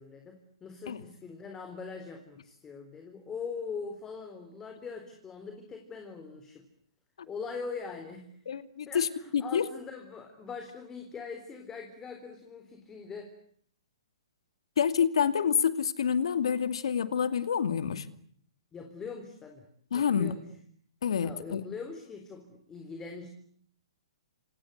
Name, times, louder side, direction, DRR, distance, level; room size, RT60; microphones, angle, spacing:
voice 1, 0.0-6.6 7.3-8.4 8.9-13.3 18.7-19.7 19.9-20.4 21.2-23.3, left 5 dB, 15° left, 6 dB, 3.8 m, -42 dB
voice 2, 8.5-9.1 9.3-9.7 14.8-18.1 19.9-20.3 21.0-21.6, left 7 dB, 75° left, 12 dB, 2.4 m, -27 dB
28.0 x 26.0 x 8.2 m, 0.62 s
hypercardioid pair, 140°, 3 cm